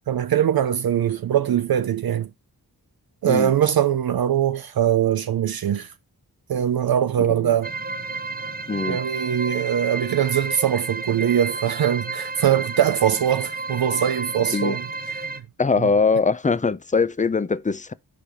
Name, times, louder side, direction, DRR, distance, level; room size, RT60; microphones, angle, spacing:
voice 1, 0.1-2.3 3.2-5.9 6.5-7.7 8.9-14.8 15.2-15.3 15.8-15.9, right 10 dB, 70° right, 0.5 m, -22 dB
voice 2, 7.2-7.6 8.7-9.0 14.5-14.8 15.6-17.9, left 4 dB, 20° left, 0.5 m, -22 dB
sound 1, 7.6-15.4, right 3 dB, 25° right, 0.7 m, -31 dB
5.0 x 4.5 x 4.9 m
wide cardioid pair, 55°, 38 cm